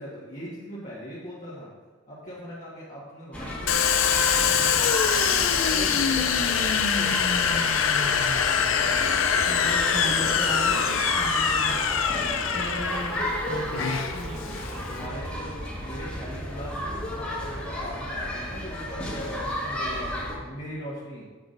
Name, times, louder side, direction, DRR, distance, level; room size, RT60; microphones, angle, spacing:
voice 1, 0.0-1.7 2.1-7.5 12.6-12.7 14.3-20.1 20.4-21.2, equal, 35° left, -8 dB, 1.4 m, -40 dB
sound 1, 3.3-20.4, left 1 dB, 5° left, 1.6 m, -32 dB
Domestic sounds home sounds, 3.7-15.0, left 7 dB, 65° left, 0.5 m, -24 dB
voice 2, 9.4-12.0 12.5-14.4, right 2 dB, 75° right, 1 dB, 1.2 m, -36 dB
8.0 x 7.0 x 2.6 m, 1.4 s
head